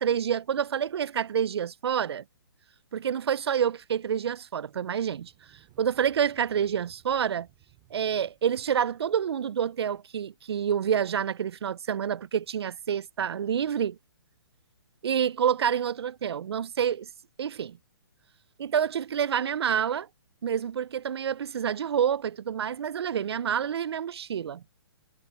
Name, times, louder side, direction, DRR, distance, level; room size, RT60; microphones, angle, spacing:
voice 1, 0.0-2.2 2.9-5.3 5.8-7.5 7.9-14.0 15.0-17.1 17.4-17.8 18.6-20.1 20.4-24.6, right 8 dB, 75° right, 0.4 m, -28 dB
sound 1, 4.7-9.6, right 21 dB, 20° right, 2.3 m, -62 dB
hypercardioid pair, 180°, 13 cm